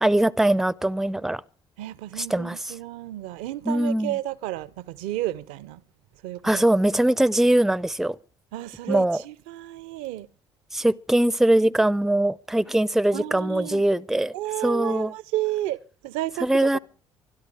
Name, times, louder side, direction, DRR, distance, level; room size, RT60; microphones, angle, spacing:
voice 1, 0.0-1.4 2.2-2.7 3.7-4.2 6.4-8.2 8.9-9.2 10.7-14.3 14.6-15.1 16.4-16.8, right 1 dB, ahead, 0.6 m, -22 dB
voice 2, 1.8-5.8 6.2-6.6 8.5-10.3 13.1-13.8 14.3-16.8, right 15 dB, 65° right, 0.6 m, -32 dB
24.5 x 12.0 x 3.4 m
figure-of-eight pair, 45°, 14 cm